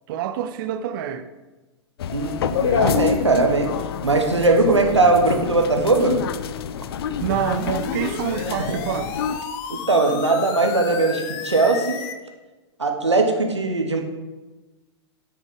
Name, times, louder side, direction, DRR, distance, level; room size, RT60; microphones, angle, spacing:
voice 1, 0.1-1.3 7.2-9.1, right 9 dB, 50° right, 0.6 m, -27 dB
sound 1, 2.0-9.4, left 8 dB, 60° left, 0.6 m, -27 dB
voice 2, 2.1-3.7 4.0-6.2 8.7-8.8 9.7-12.0 12.8-14.0, right 3 dB, 85° right, 1.4 m, -19 dB
sound 2, 7.1-12.1, left 7 dB, 40° left, 1.0 m, -33 dB
9.1 x 6.3 x 5.3 m
figure-of-eight pair, 105°, 14 cm